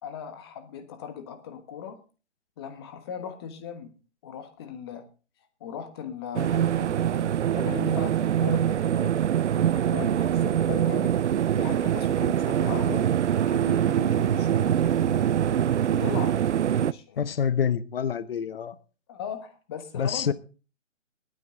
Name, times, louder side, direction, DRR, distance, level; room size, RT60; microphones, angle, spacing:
voice 1, 0.0-2.0 2.6-3.9 4.2-5.1 5.6-9.1 9.5-11.1 11.5-13.1 13.5-15.3 15.9-16.4 16.7-17.5 19.1-20.3, left 7 dB, 20° left, 8 dB, 1.4 m, -38 dB
sound 1, 6.3-16.9, right 10 dB, 70° right, 0.5 m, -24 dB
voice 2, 17.2-18.8 19.9-20.3, left 7 dB, 50° left, 15 dB, 1.0 m, -27 dB
20.0 x 9.4 x 3.8 m, 0.36 s
hypercardioid pair, 170°, 37 cm